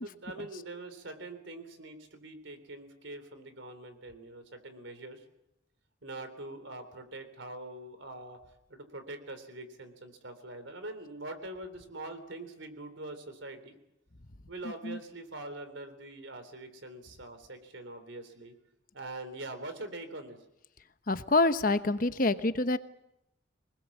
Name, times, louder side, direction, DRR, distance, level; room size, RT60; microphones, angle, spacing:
voice 1, 0.0-5.2 6.0-8.4 8.7-13.8 14.5-18.5 18.9-20.4, right 2 dB, 80° right, 9 dB, 3.6 m, -43 dB
voice 2, 21.1-22.8, left 2 dB, 45° left, 11 dB, 1.0 m, -26 dB
25.5 x 20.0 x 7.4 m, 0.85 s
head